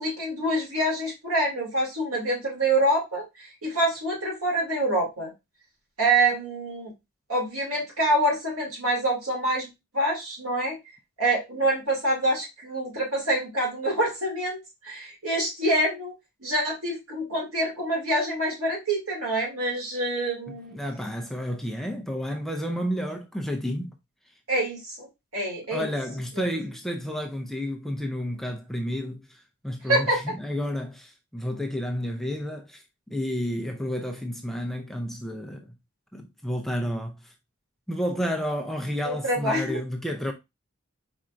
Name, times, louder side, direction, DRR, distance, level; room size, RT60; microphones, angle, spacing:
voice 1, 0.0-5.3 6.0-6.9 7.3-10.8 11.2-14.6 14.8-16.1 16.4-20.8 24.5-25.1 25.3-25.9 26.3-26.4 29.9-30.3 39.0-39.8, right 1 dB, 80° right, 2.7 m, -26 dB
voice 2, 20.7-24.0 25.7-35.7 36.1-37.3 37.9-40.3, equal, ahead, 0.4 m, -31 dB
4.8 x 4.3 x 2.5 m
head